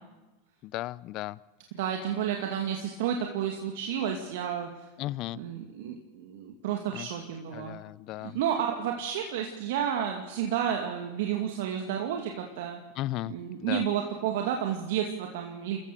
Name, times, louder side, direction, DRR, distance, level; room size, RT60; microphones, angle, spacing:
voice 1, 0.6-1.4 5.0-5.4 6.9-7.1 7.5-8.4 13.0-13.3 13.6-13.8, left 16 dB, 50° left, 21 dB, 0.7 m, -35 dB
voice 2, 1.8-4.9 5.3-7.8 8.2-12.8 13.3-15.8, right 9 dB, 70° right, 2 dB, 2.3 m, -31 dB
28.5 x 15.0 x 6.8 m, 1.1 s
hypercardioid pair, 105°, 0 cm